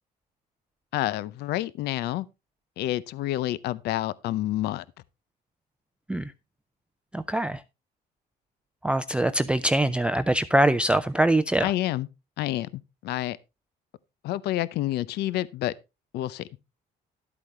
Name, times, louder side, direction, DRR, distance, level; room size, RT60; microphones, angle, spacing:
voice 1, 0.9-2.3 2.8-4.8 11.6-12.1 12.4-13.4 14.2-15.7 16.1-16.5, left 14 dB, 75° left, 0.6 m, -28 dB
voice 2, 7.1-7.6 8.8-11.7, right 1 dB, 5° right, 0.4 m, -23 dB
12.0 x 8.4 x 3.2 m
cardioid pair, 110°, 17 cm